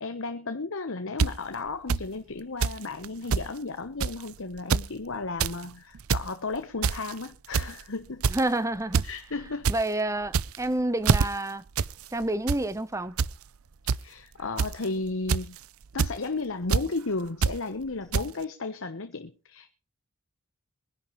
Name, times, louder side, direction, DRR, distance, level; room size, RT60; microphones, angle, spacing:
voice 1, 0.0-8.2 9.0-9.7 14.0-15.6 15.9-19.7, left 3 dB, 60° left, 1.1 m, -34 dB
sound 1, 1.2-1.3 1.9-2.0 2.6-2.8 3.0-3.5 4.0-4.2 4.6-4.9 5.2-5.6 5.9-6.3 6.8-7.1 7.5-7.8 8.2-8.5 8.9-9.1 9.4-9.8 10.3-10.7 11.0-11.3 11.8-11.9 12.2-12.6 13.2-13.3 13.9-14.0 14.6-14.8 15.3-15.6 16.0-16.1 16.7-16.8 17.4-17.6 18.1-18.2, right 5 dB, 70° right, 0.6 m, -24 dB
voice 2, 8.3-9.0 9.7-11.6 12.1-13.2, right 1 dB, 15° right, 0.8 m, -28 dB
23.5 x 11.0 x 3.1 m
head